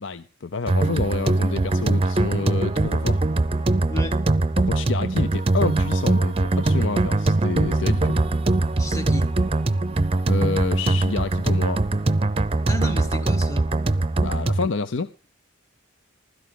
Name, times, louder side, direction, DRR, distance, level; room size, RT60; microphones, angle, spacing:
voice 1, 0.0-3.2 4.6-8.2 10.3-11.8 14.2-15.1, left 4 dB, 65° left, 0.6 m, -28 dB
sound 1, 0.7-14.7, right 2 dB, 30° right, 0.6 m, -22 dB
voice 2, 3.9-4.2 8.8-9.3 12.7-13.7, left 1 dB, 15° left, 1.2 m, -32 dB
15.5 x 13.0 x 3.8 m
head